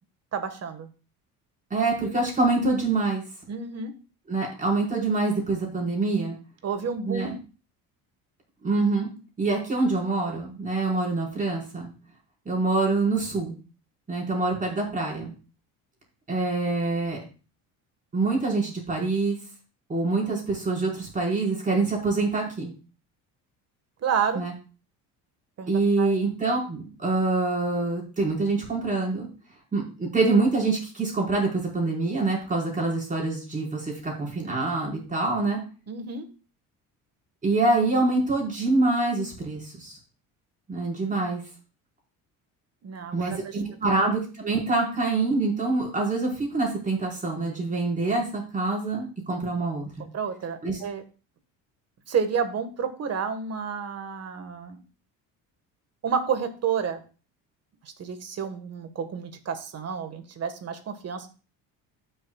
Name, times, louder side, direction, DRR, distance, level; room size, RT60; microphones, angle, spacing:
voice 1, 0.3-0.9 3.5-3.9 6.6-7.3 24.0-24.4 25.6-26.1 35.9-36.3 42.8-43.6 50.0-51.0 52.1-54.8 56.0-57.0 57.8-61.3, right 6 dB, 45° right, 8 dB, 1.5 m, -30 dB
voice 2, 1.7-3.2 4.3-6.4 7.0-7.3 8.6-9.1 9.4-11.9 12.4-13.5 14.1-15.3 16.3-17.2 18.1-19.4 19.9-22.7 24.3-24.5 25.7-29.3 29.7-35.6 37.4-40.0 40.7-41.4 43.1-50.1 50.6-50.8, right 3 dB, 20° right, -3 dB, 4.8 m, -25 dB
16.0 x 6.6 x 2.4 m, 0.35 s
cardioid pair, 115°, 36 cm